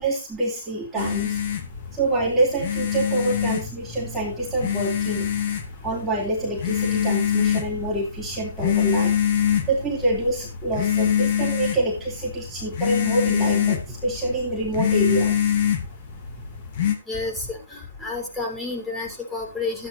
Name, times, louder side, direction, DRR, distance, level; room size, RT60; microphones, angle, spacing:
voice 1, 0.0-1.4 1.9-5.3 5.8-9.2 9.7-15.5, right 2 dB, 10° right, -6 dB, 3.1 m, -26 dB
sound 1, 1.0-16.9, left 9 dB, 45° left, 2.7 m, -25 dB
voice 2, 17.1-19.9, left 3 dB, 10° left, 0 dB, 4.7 m, -30 dB
13.5 x 10.0 x 2.8 m, 0.26 s
hypercardioid pair, 150°, 0 cm